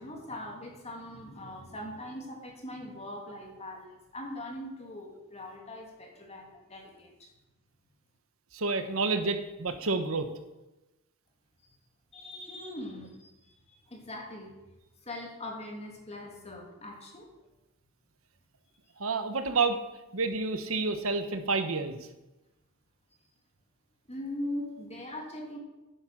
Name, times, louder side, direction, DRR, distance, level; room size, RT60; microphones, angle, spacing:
voice 1, 0.0-7.3 12.1-13.5 13.9-14.5 15.0-17.3 24.1-25.6, left 1 dB, 30° left, 1 dB, 2.5 m, -41 dB
voice 2, 8.5-10.3 19.0-19.8 20.1-22.1, right 3 dB, 70° right, 8 dB, 1.1 m, -29 dB
10.0 x 9.7 x 5.9 m, 1.0 s
head